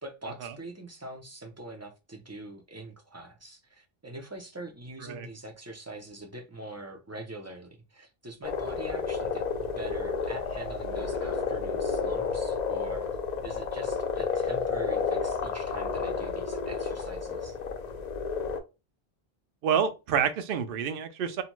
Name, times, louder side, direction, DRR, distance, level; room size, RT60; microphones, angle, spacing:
voice 1, 0.0-9.4 9.8-13.1 13.4-17.6, right 1 dB, 25° right, 0.4 m, -43 dB
sound 1, 8.4-18.6, left 5 dB, 55° left, 0.5 m, -31 dB
voice 2, 19.6-21.4, right 7 dB, 65° right, 0.7 m, -28 dB
2.7 x 2.1 x 3.0 m
omnidirectional pair, 1.0 m